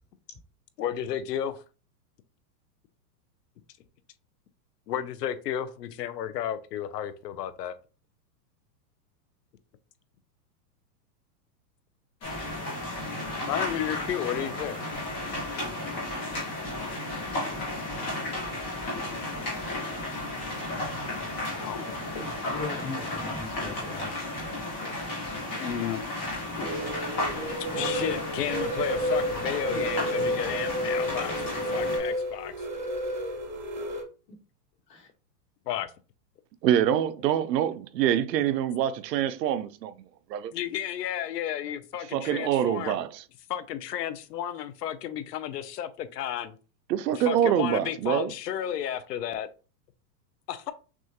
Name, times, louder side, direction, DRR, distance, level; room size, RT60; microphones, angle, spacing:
voice 1, 0.8-1.6 4.9-7.8 13.5-14.8 18.9-19.3 21.6-21.8 25.5-26.1 27.7-32.5 35.7-35.9 40.5-43.0 43.5-46.5 47.1-49.5 50.5-50.7, left 10 dB, 75° left, 0.7 m, -33 dB
sound 1, 12.2-32.0, left 2 dB, 10° left, 0.7 m, -33 dB
voice 2, 22.5-25.4 26.5-26.7 27.4-28.3 34.9-35.1, left 3 dB, 30° left, 1.2 m, -39 dB
sound 2, 26.6-34.0, equal, 30° right, 0.4 m, -31 dB
voice 3, 36.6-39.9 40.3-40.5 42.1-43.2 46.9-48.3, right 10 dB, 80° right, 0.6 m, -25 dB
6.1 x 2.4 x 2.8 m
supercardioid pair, 175°, 50 cm